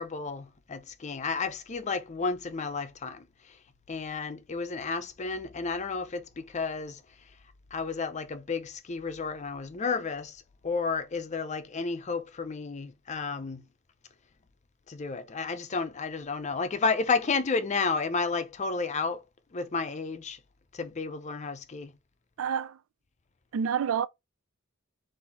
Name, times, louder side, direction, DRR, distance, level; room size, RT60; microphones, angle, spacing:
voice 1, 0.0-3.2 3.9-7.0 7.7-10.4 10.6-13.6 14.9-19.2 19.5-20.4 20.7-21.9, left 4 dB, 35° left, 0.5 m, -32 dB
voice 2, 22.4-22.8 23.5-24.1, right 7 dB, 85° right, 0.4 m, -28 dB
4.0 x 2.7 x 4.1 m
head